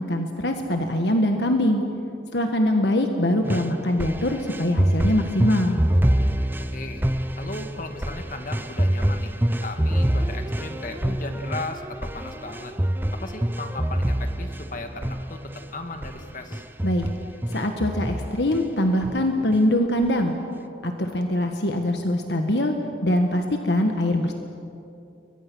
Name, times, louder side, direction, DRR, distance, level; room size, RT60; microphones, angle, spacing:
voice 1, 0.0-1.8 2.3-5.8 16.8-17.1 17.5-20.3 20.8-22.7 23.0-24.3, left 1 dB, 70° left, 4 dB, 1.6 m, -23 dB
sound 1, 3.4-15.7 16.0-16.2 16.5-18.6 19.0-19.6 20.0-20.1, right 1 dB, 10° right, 0.8 m, -26 dB
voice 2, 6.7-7.0 7.4-9.3 9.6-12.7 13.2-15.4 15.7-16.6, left 2 dB, 50° left, 5 dB, 2.1 m, -36 dB
29.5 x 23.0 x 6.3 m, 2.7 s
head